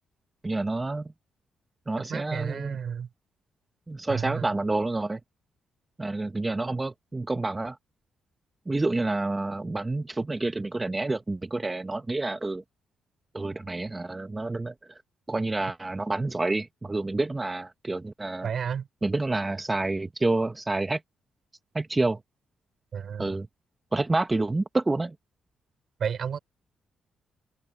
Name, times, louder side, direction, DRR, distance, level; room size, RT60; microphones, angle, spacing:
voice 1, 0.4-1.1 1.9-2.8 3.9-5.2 6.0-7.8 8.7-12.6 13.3-15.0 15.3-18.5 19.0-21.0 21.7-22.2 23.2-23.5 23.9-25.1, right 2 dB, 15° right, 0.9 m, -28 dB
voice 2, 2.1-3.1 4.1-4.5 18.4-18.9 22.9-23.4 26.0-26.4, right 7 dB, 55° right, 4.7 m, -32 dB
open air
cardioid pair, 120°, 0 cm